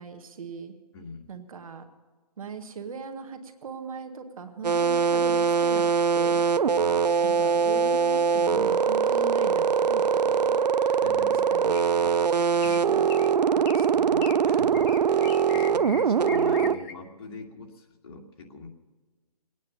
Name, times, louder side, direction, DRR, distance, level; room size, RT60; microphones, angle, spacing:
voice 1, 0.0-0.7 1.3-1.8 2.4-5.9 6.1-6.5 7.2-10.6 11.5-12.1 12.8-14.6, right 4 dB, 60° right, 7 dB, 1.9 m, -39 dB
voice 2, 0.9-1.3 6.8-7.0 10.8-11.5 12.6-12.8 13.9-18.7, left 3 dB, 35° left, 1 dB, 2.1 m, -43 dB
sound 1, 4.6-16.8, right 6 dB, 85° right, 0.7 m, -22 dB
sound 2, 11.7-12.1 12.6-12.8 13.1-13.3 13.7-13.9 14.2-14.4 14.7-16.9, left 7 dB, 20° left, 0.8 m, -41 dB
21.0 x 9.5 x 7.0 m, 1.3 s
hypercardioid pair, 160°, 21 cm